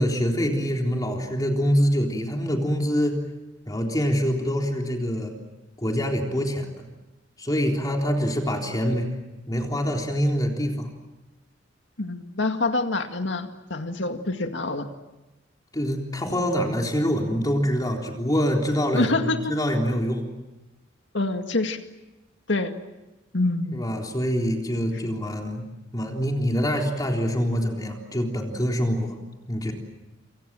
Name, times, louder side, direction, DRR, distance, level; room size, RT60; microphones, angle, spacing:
voice 1, 0.0-3.2 3.7-5.3 5.8-6.7 7.4-9.1 9.5-10.9 15.7-20.3 23.7-25.6 25.9-29.1 29.5-29.7, equal, 20° left, 1 dB, 3.8 m, -25 dB
voice 2, 12.0-14.9 18.9-19.5 21.1-21.8 22.5-22.7 23.3-23.9, left 2 dB, 65° left, 6 dB, 2.2 m, -26 dB
28.5 x 27.5 x 7.6 m, 1.1 s
head